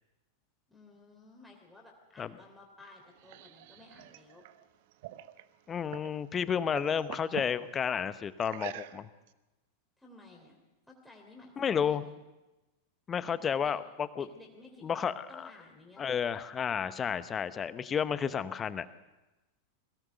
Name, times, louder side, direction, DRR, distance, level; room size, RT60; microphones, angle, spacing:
voice 1, 0.7-4.4 10.0-10.6 10.9-12.2 13.3-13.7 14.2-16.2, left 2 dB, 5° left, -1 dB, 3.3 m, -55 dB
sound 1, 2.8-6.2 6.5-7.6 8.4-9.3, right 14 dB, 50° right, 0.9 m, -46 dB
voice 2, 5.7-9.1 11.6-12.0 13.1-14.3 14.8-15.5 16.0-18.9, left 7 dB, 20° left, 14 dB, 1.0 m, -31 dB
22.0 x 17.5 x 6.8 m, 1.1 s
figure-of-eight pair, 90°, 0 cm